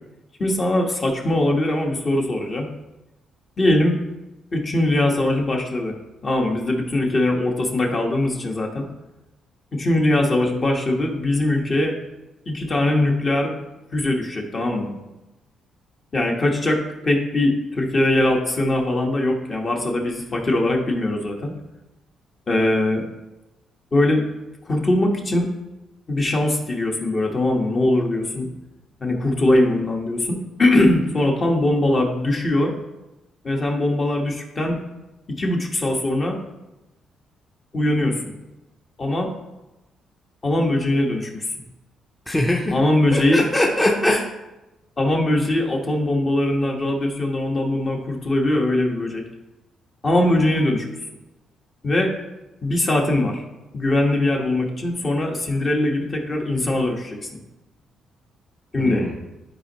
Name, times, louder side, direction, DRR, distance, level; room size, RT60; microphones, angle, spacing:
voice 1, 0.4-2.7 3.6-4.0 4.5-6.0 6.2-8.8 9.7-11.9 12.5-13.5 13.9-14.9 16.1-21.5 22.5-23.0 23.9-24.2 24.6-25.5 26.1-28.5 29.0-32.7 33.4-34.8 35.4-36.4 37.7-38.3 39.0-39.3 40.4-41.4 42.7-43.4 45.0-49.2 50.0-50.8 51.8-52.1 52.6-53.4 53.7-57.2 58.7-59.1, left 1 dB, 35° left, 1 dB, 1.4 m, -21 dB
voice 2, 42.3-42.8 43.1-44.3 58.8-59.1, left 1 dB, 10° left, -1 dB, 0.8 m, -21 dB
10.5 x 4.5 x 3.1 m, 1.0 s
cardioid pair, 90°, 0 cm